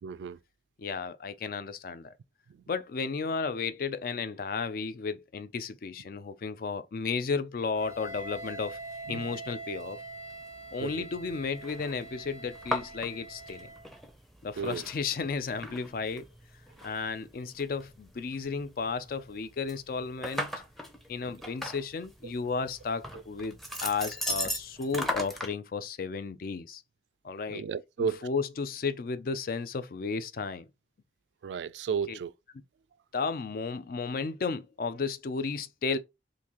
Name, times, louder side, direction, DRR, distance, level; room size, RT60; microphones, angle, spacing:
voice 1, 0.0-0.4 9.1-9.2 10.8-11.1 14.6-14.8 27.5-28.3 31.4-32.3, right 6 dB, 85° right, 0.3 m, -33 dB
voice 2, 0.8-2.1 2.7-8.8 9.1-10.0 10.7-13.7 14.4-16.3 16.8-20.5 21.1-26.8 27.2-27.6 28.0-30.7 32.1-32.2 33.1-36.0, left 5 dB, 55° left, 0.4 m, -33 dB
Wind instrument woodwind instrument, 7.7-13.9, right 2 dB, 35° left, 0.9 m, -44 dB
sound 1, 7.8-25.5, equal, ahead, 0.5 m, -40 dB
3.7 x 2.6 x 2.9 m
head